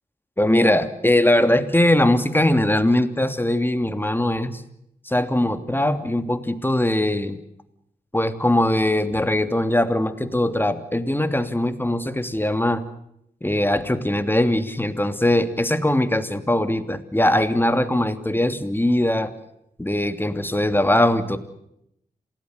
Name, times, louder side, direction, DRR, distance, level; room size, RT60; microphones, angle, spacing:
voice 1, 0.4-4.6 5.0-7.4 8.1-12.8 13.4-19.3 19.8-21.4, left 1 dB, 15° left, 9 dB, 2.9 m, -21 dB
27.5 x 18.0 x 8.1 m, 0.77 s
cardioid pair, 50°, 16 cm